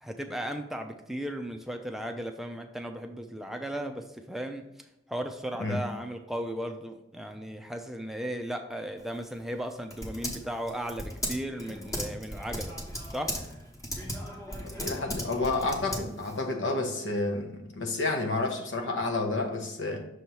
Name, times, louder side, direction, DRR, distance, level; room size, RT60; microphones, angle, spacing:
voice 1, 0.0-4.6 5.1-12.8 13.1-13.3, equal, ahead, 5 dB, 0.4 m, -36 dB
Typing, 9.0-16.4, equal, 15° left, 1.0 m, -37 dB
voice 2, 14.6-20.0, left 3 dB, 85° left, 2 dB, 1.0 m, -30 dB
6.3 x 3.0 x 5.3 m, 0.86 s
head